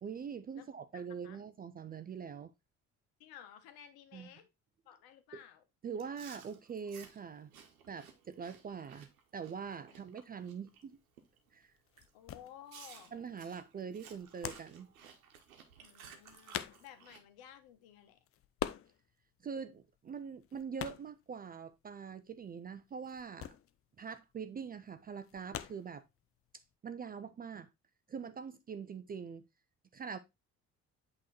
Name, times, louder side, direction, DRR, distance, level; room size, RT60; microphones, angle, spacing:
voice 1, 0.0-2.5 4.1-4.3 5.3-5.4 5.8-7.5 7.9-11.0 11.5-11.7 13.1-14.9 19.4-23.5 24.0-26.0 26.8-27.7 28.1-29.5 29.9-30.2, right 6 dB, 20° right, 0.4 m, -43 dB
voice 2, 3.2-4.5 4.9-5.6 9.9-10.0 12.1-13.1 15.8-18.2, left 10 dB, 55° left, 1.2 m, -55 dB
Chewing mastication, 6.0-10.8 11.2-11.5 12.0-12.1 12.7-17.2, right 7 dB, 75° right, 1.0 m, -56 dB
sound 1, 10.5-26.7, left 11 dB, 35° left, 0.5 m, -46 dB
8.2 x 3.1 x 4.1 m
figure-of-eight pair, 50°, 42 cm